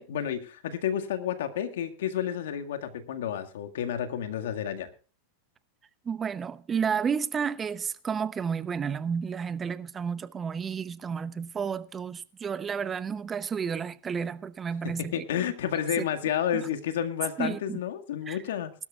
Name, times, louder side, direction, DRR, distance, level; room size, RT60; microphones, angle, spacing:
voice 1, 0.0-4.9 14.8-18.7, left 9 dB, 80° left, 1.9 m, -31 dB
voice 2, 6.0-15.2 16.0-16.1 16.5-16.7 17.4-17.8 18.3-18.4, right 6 dB, 20° right, 0.8 m, -31 dB
20.5 x 12.5 x 2.4 m
hypercardioid pair, 120°, 0 cm